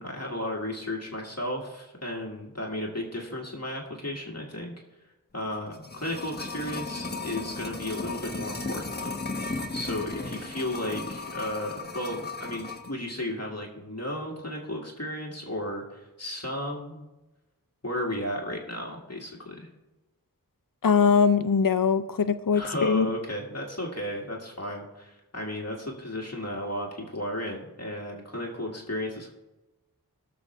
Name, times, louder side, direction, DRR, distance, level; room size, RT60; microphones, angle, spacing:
voice 1, 0.0-4.7 5.3-9.2 9.7-17.0 17.8-19.7 22.5-29.3, left 1 dB, 45° left, -1 dB, 1.8 m, -34 dB
sound 1, 5.5-12.9 13.2-13.3, left 3 dB, 25° left, 1.1 m, -35 dB
voice 2, 20.8-23.1, left 6 dB, 65° left, 11 dB, 0.6 m, -22 dB
18.5 x 6.9 x 3.2 m, 1.1 s
wide cardioid pair, 55°, 36 cm